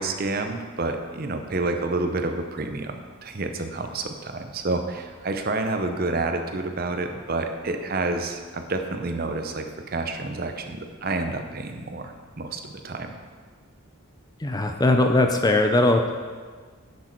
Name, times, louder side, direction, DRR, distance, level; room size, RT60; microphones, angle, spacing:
voice 1, 0.0-3.0 3.2-13.1, right 3 dB, 45° right, 6 dB, 0.7 m, -29 dB
voice 2, 14.4-16.1, left 2 dB, 20° left, 4 dB, 0.5 m, -20 dB
10.0 x 6.2 x 4.5 m, 1.5 s
head